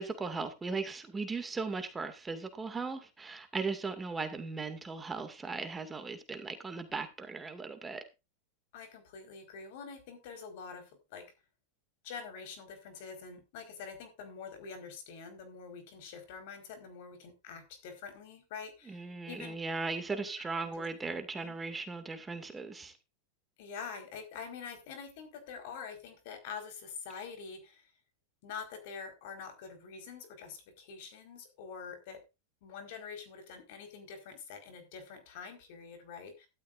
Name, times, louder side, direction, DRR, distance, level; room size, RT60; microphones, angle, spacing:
voice 1, 0.0-8.0 18.9-22.9, right 4 dB, 15° right, 2.2 m, -38 dB
voice 2, 8.7-11.2 12.0-19.6 20.1-20.9 21.3-21.5 23.6-27.9 28.4-32.2 32.6-36.5, left 6 dB, 65° left, 4.6 m, -46 dB
12.5 x 12.5 x 2.6 m
hypercardioid pair, 105°, 0 cm